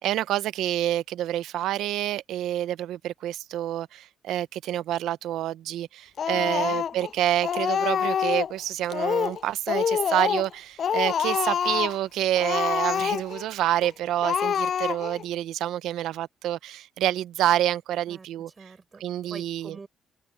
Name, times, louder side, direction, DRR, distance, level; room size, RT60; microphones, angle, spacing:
voice 1, 0.0-18.5 19.0-19.8, right 12 dB, 85° right, 0.7 m, -28 dB
Speech, 6.2-7.1 7.4-8.6 8.9-9.4 9.7-10.5 10.8-12.0 12.4-13.5 13.8-13.9 14.2-15.2, left 8 dB, 55° left, 0.4 m, -26 dB
voice 2, 6.3-6.8 18.1-19.0 19.3-19.9, right 4 dB, 30° right, 5.7 m, -46 dB
open air
cardioid pair, 90°, 0 cm